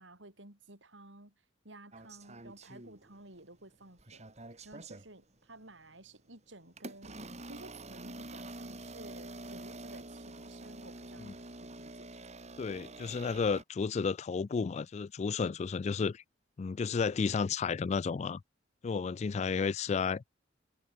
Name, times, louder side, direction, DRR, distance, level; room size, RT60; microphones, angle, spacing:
voice 1, 0.0-1.3 1.6-4.2 4.6-7.2 7.4-12.1, right 2 dB, 80° right, 6.9 m, -53 dB
sound 1, 1.9-3.4 3.7-5.1 5.8-6.0 6.8-13.6, right 2 dB, 35° right, 3.6 m, -47 dB
voice 2, 12.6-16.2 16.6-18.4 18.8-20.2, left 5 dB, 35° left, 0.3 m, -32 dB
head